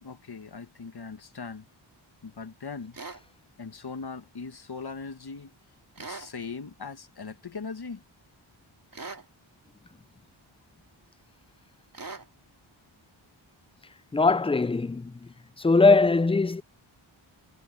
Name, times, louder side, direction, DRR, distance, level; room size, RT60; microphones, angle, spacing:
voice 1, 0.0-1.7 2.2-3.0 3.6-5.5 6.0-8.0, left 4 dB, 50° left, 1.5 m, -40 dB
sound 1, 2.9-3.2 6.0-6.3 8.9-9.3 11.9-12.3, right 3 dB, 45° right, 2.8 m, -40 dB
voice 2, 14.1-15.2 15.6-16.6, left 3 dB, 15° left, 0.3 m, -21 dB
wide cardioid pair, 65°, 48 cm